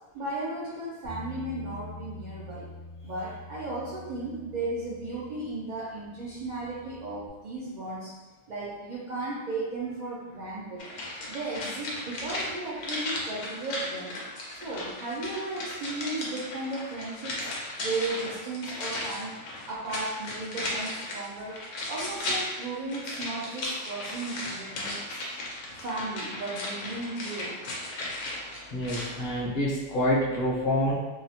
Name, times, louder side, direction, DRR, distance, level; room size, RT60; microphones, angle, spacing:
voice 1, 0.1-2.7 3.0-8.1 8.5-10.9 11.3-14.1 14.5-17.5 17.8-19.3 19.7-21.6 21.9-25.2 25.8-27.7, right 2 dB, 70° right, -7 dB, 0.4 m, -35 dB
Bass guitar, 1.0-7.3, left 2 dB, 90° right, 1.0 m, -45 dB
sound 1, 10.8-29.2 29.5-29.6, left 1 dB, 90° left, 1.0 m, -36 dB
voice 2, 28.7-30.9, left 1 dB, 55° left, -5 dB, 0.8 m, -27 dB
2.8 x 2.0 x 2.7 m, 1.1 s
omnidirectional pair, 1.4 m